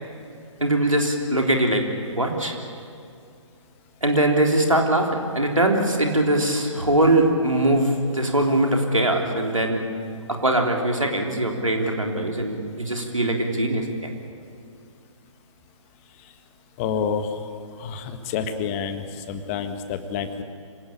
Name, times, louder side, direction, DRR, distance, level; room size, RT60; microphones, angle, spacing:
voice 1, 0.6-1.8 2.2-2.6 4.0-9.8 10.3-14.1, right 1 dB, 85° right, 1 dB, 3.7 m, -21 dB
voice 2, 16.8-17.3 17.8-20.4, left 6 dB, 25° left, 8 dB, 1.6 m, -28 dB
26.0 x 17.5 x 8.8 m, 2.4 s
figure-of-eight pair, 135°, 16 cm